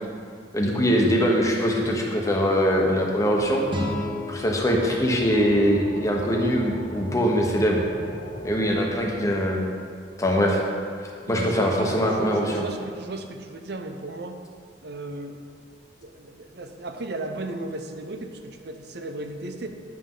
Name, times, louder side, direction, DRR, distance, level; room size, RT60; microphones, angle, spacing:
voice 1, 0.5-3.6 4.3-7.8 8.4-9.6 10.2-10.6 11.3-12.6, equal, 20° left, -1 dB, 1.1 m, -22 dB
sound 1, 3.3-8.8, equal, 60° left, 1.5 m, -39 dB
sound 2, 3.7-6.7, left 1 dB, 30° right, 1.2 m, -34 dB
voice 2, 11.3-14.4 14.8-15.4 16.0-19.7, right 2 dB, 65° right, 6 dB, 0.7 m, -35 dB
9.6 x 6.6 x 3.9 m, 2.2 s
head